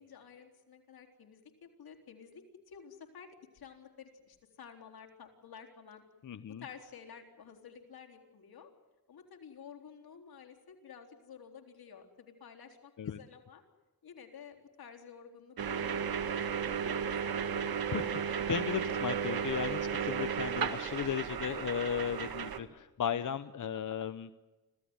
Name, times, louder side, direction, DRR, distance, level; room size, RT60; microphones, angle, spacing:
voice 1, 0.0-3.3 3.5-6.0 6.5-8.7 9.1-13.6 14.0-16.1 16.4-17.6 17.9-18.1 20.2-20.4, left 7 dB, 90° left, 2 dB, 4.0 m, -52 dB
voice 2, 6.2-6.6 13.0-13.2 17.9-24.3, left 8 dB, 60° left, 12 dB, 0.9 m, -36 dB
sound 1, 15.6-22.6, right 7 dB, 80° right, 1.8 m, -34 dB
26.0 x 16.5 x 9.7 m, 1.2 s
wide cardioid pair, 90°, 36 cm